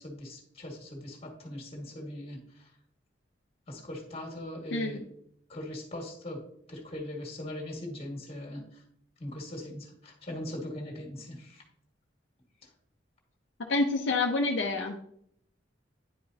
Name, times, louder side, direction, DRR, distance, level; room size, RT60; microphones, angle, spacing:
voice 1, 0.0-2.7 3.7-5.0 5.5-6.4 6.7-8.8 9.2-11.6, left 1 dB, 35° left, 0 dB, 1.9 m, -40 dB
voice 2, 13.7-15.0, left 3 dB, 70° left, 1 dB, 0.6 m, -27 dB
10.0 x 4.8 x 2.8 m, 0.68 s
head